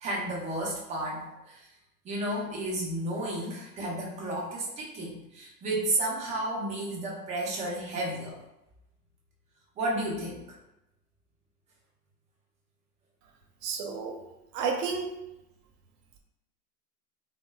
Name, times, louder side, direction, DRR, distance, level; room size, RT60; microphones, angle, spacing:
voice 1, 0.0-1.7 2.0-8.4 9.8-10.4, right 1 dB, 15° right, -3 dB, 0.4 m, -32 dB
voice 2, 13.6-14.2 14.5-15.1, right 5 dB, 80° right, 3 dB, 0.6 m, -31 dB
3.0 x 2.0 x 2.2 m, 0.91 s
hypercardioid pair, 110°, 47 cm